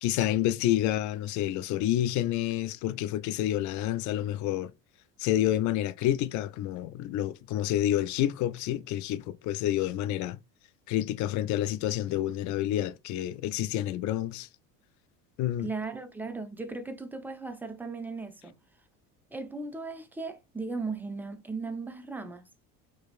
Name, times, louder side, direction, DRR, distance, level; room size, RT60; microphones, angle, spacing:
voice 1, 0.0-4.7 5.2-10.4 10.9-14.5 15.4-15.7, left 13 dB, 40° left, 0.4 m, -29 dB
voice 2, 15.6-18.6 19.3-22.5, right 3 dB, 5° right, 0.6 m, -37 dB
4.6 x 2.9 x 2.3 m
hypercardioid pair, 75°, 46 cm